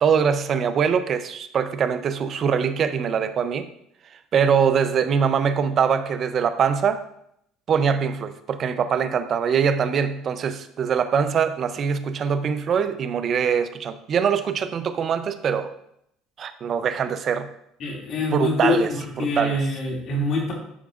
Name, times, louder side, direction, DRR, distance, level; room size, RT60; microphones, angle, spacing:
voice 1, 0.0-3.7 4.3-7.0 7.7-15.7 16.4-17.5 18.3-18.9 19.2-19.6, right 7 dB, 45° right, 11 dB, 0.6 m, -23 dB
voice 2, 17.8-20.5, left 2 dB, 55° left, -2 dB, 2.4 m, -25 dB
11.0 x 4.8 x 2.5 m, 0.75 s
supercardioid pair, 95°, 0 cm